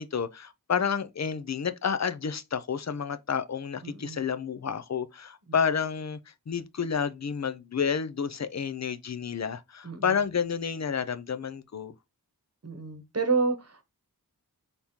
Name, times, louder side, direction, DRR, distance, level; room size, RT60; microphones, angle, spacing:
voice 1, 0.0-11.9, left 6 dB, 45° left, 0.5 m, -30 dB
voice 2, 3.8-4.2 9.8-10.2 12.6-13.8, right 4 dB, 40° right, 1.1 m, -29 dB
4.0 x 3.6 x 2.9 m
wide cardioid pair, 50°, 37 cm